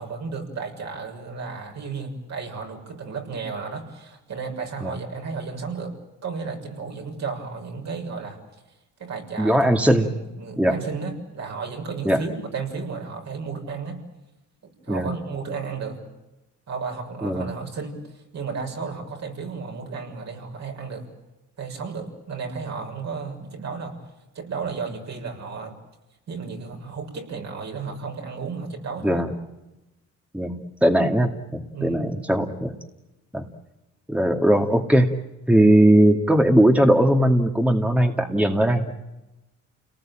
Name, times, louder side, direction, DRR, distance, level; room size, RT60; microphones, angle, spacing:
voice 1, 0.0-6.0 6.2-8.6 9.0-14.0 14.8-16.0 16.7-21.0 21.6-24.0 24.3-25.7 26.3-29.2 31.7-32.0, right 5 dB, 60° right, 2 dB, 6.7 m, -33 dB
voice 2, 9.4-10.1 10.6-10.8 12.1-12.2 14.9-15.1 17.2-17.5 29.0-29.3 30.3-32.7 33.3-33.4 34.1-35.2 35.5-38.8, right 1 dB, 5° right, 4 dB, 2.2 m, -19 dB
29.5 x 19.5 x 8.9 m, 1.0 s
cardioid pair, 90°, 30 cm